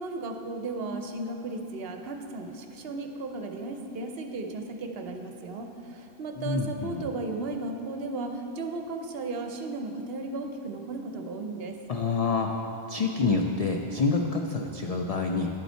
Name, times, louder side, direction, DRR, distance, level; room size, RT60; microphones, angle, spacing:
voice 1, 0.0-11.8, right 3 dB, 65° right, 4 dB, 0.8 m, -35 dB
voice 2, 6.4-7.1 11.9-12.5 12.9-15.5, left 4 dB, 70° left, 2 dB, 0.3 m, -27 dB
11.0 x 5.4 x 4.4 m, 2.8 s
omnidirectional pair, 1.2 m